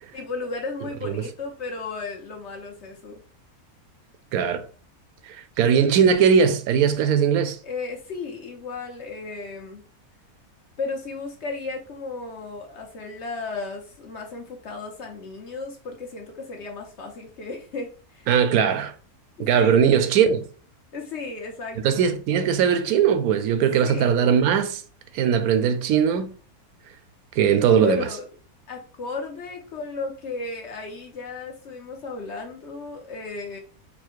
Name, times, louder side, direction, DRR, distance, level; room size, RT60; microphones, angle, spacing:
voice 1, 0.1-3.2 7.6-9.8 10.8-18.3 19.4-19.8 20.9-22.1 23.8-24.2 27.8-28.2 28.7-33.6, left 3 dB, 55° left, 1.0 m, -34 dB
voice 2, 4.3-4.7 5.2-7.6 18.3-18.9 19.4-20.5 21.8-24.8 25.1-26.3 27.3-28.1, right 7 dB, 75° right, 1.0 m, -20 dB
4.1 x 2.1 x 4.5 m
omnidirectional pair, 1.6 m